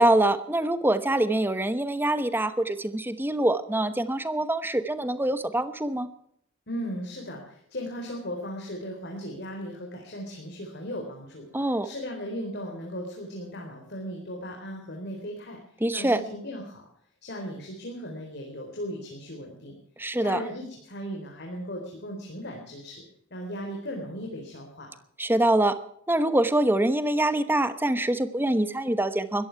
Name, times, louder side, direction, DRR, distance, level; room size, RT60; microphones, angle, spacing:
voice 1, 0.0-6.1 11.5-11.9 15.8-16.2 20.0-20.4 25.2-25.8 26.1-29.5, right 1 dB, 10° right, 12 dB, 1.0 m, -24 dB
voice 2, 6.7-15.6 15.9-16.9 17.2-19.8 20.2-23.1 23.3-24.9, equal, 55° left, 1 dB, 4.1 m, -37 dB
21.0 x 14.5 x 4.7 m, 0.69 s
head